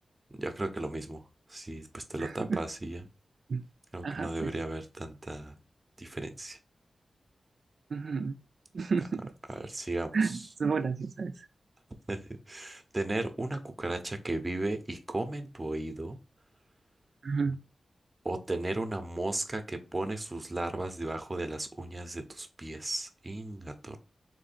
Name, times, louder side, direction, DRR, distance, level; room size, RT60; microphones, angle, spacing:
voice 1, 0.4-1.2 1.5-3.0 3.9-5.6 6.0-6.6 9.5-10.2 12.1-16.2 18.2-24.0, right 2 dB, 20° right, 8 dB, 0.7 m, -35 dB
voice 2, 2.2-2.6 3.5-3.6 4.0-4.5 7.9-8.4 8.7-9.3 10.1-11.5 17.2-17.6, right 4 dB, 60° right, 7 dB, 0.3 m, -31 dB
3.7 x 3.2 x 4.2 m, 0.31 s
wide cardioid pair, 120°, 0 cm